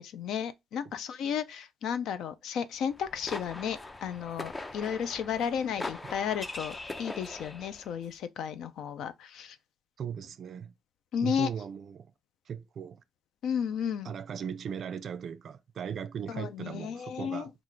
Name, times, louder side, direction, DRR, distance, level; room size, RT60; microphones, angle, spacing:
voice 1, 0.0-9.6 11.1-11.5 13.4-14.1 16.3-17.5, left 8 dB, 80° left, 0.4 m, -33 dB
sound 1, 2.9-7.9, left 2 dB, 25° left, 0.5 m, -41 dB
voice 2, 10.0-10.7 11.2-12.1 12.5-13.0 14.0-17.5, right 7 dB, 60° right, 0.4 m, -38 dB
3.1 x 2.4 x 3.8 m
cardioid pair, 90°, 0 cm